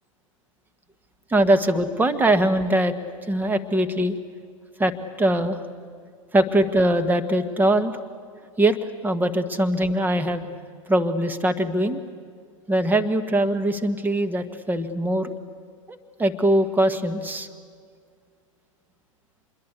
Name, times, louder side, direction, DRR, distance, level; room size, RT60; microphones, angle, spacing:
voice 1, 1.3-3.0 3.3-4.1 4.8-5.6 6.3-8.0 8.6-8.8 9.0-10.5 10.9-12.0 12.7-15.3 15.9-17.5, right 1 dB, 10° right, 8 dB, 1.6 m, -22 dB
26.5 x 22.0 x 8.3 m, 2.1 s
hypercardioid pair, 105°, 17 cm